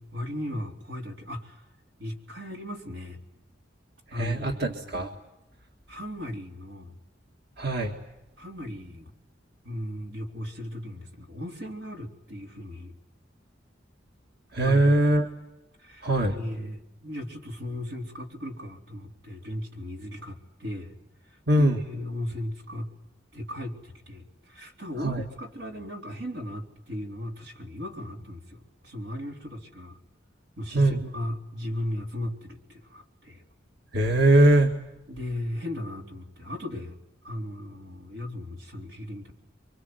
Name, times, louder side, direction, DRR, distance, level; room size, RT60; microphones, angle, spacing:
voice 1, 0.0-1.6 2.0-3.2 4.1-5.0 5.9-7.0 8.4-9.1 9.6-12.9 14.6-15.2 15.8-21.0 21.2-22.9 23.3-30.0 30.6-33.4 35.1-37.0 37.2-39.3, left 1 dB, 90° right, 2 dB, 4.0 m, -37 dB
voice 2, 4.2-5.1 7.6-7.9 14.5-15.3 16.0-16.4 21.5-21.8 25.0-25.2 30.7-31.0 33.9-34.7, right 1 dB, 60° right, 3 dB, 1.8 m, -21 dB
29.0 x 24.0 x 7.9 m, 0.90 s
head